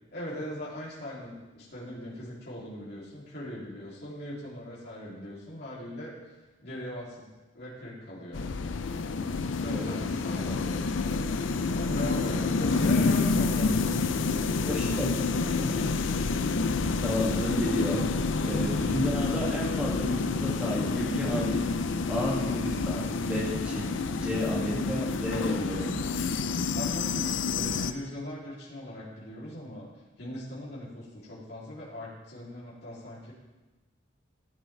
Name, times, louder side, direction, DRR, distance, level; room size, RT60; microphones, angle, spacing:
voice 1, 0.1-6.1 6.6-7.3 7.5-8.4 9.5-11.3 11.7-14.7 15.4-15.9 26.7-29.9 30.2-33.3, left 1 dB, 55° left, -8 dB, 3.1 m, -40 dB
sound 1, 8.3-27.9, left 4 dB, 75° left, 0.5 m, -28 dB
voice 2, 14.7-15.1 17.0-18.1 18.4-26.1, equal, 5° right, -5 dB, 2.3 m, -32 dB
15.0 x 8.6 x 3.4 m, 1.1 s
head